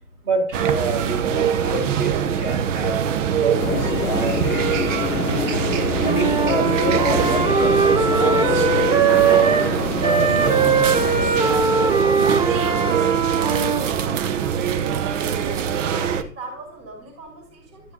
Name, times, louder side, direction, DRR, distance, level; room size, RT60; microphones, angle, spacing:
voice 1, 0.2-2.9 3.4-5.5 6.0-9.5 10.0-11.4, right 1 dB, 75° right, -2 dB, 4.6 m, -28 dB
sound 1, 0.5-16.2, right 8 dB, 55° right, 0.9 m, -23 dB
sound 2, 3.6-11.3, left 8 dB, 80° left, 0.7 m, -28 dB
Wind instrument woodwind instrument, 6.0-9.7 10.0-13.9, right 5 dB, 10° right, 0.6 m, -20 dB
voice 2, 15.4-17.9, right 3 dB, 30° right, 3 dB, 2.7 m, -39 dB
11.5 x 8.1 x 2.7 m, 0.38 s
figure-of-eight pair, 95°, 44 cm